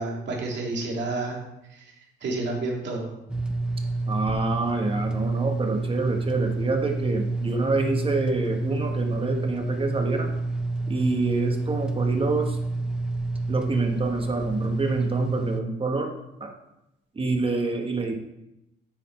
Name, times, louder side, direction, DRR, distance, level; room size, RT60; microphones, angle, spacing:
voice 1, 0.0-1.4 1.7-1.8 2.2-3.1, right 2 dB, 65° right, -1 dB, 2.3 m, -29 dB
sound 1, 3.3-15.6, right 2 dB, 5° right, 0.6 m, -29 dB
voice 2, 4.1-10.3 10.9-12.6 13.5-16.1 16.4-16.5 17.1-18.1, right 3 dB, 25° right, 3 dB, 1.3 m, -27 dB
9.9 x 4.1 x 4.4 m, 0.87 s
cardioid pair, 90°, 20 cm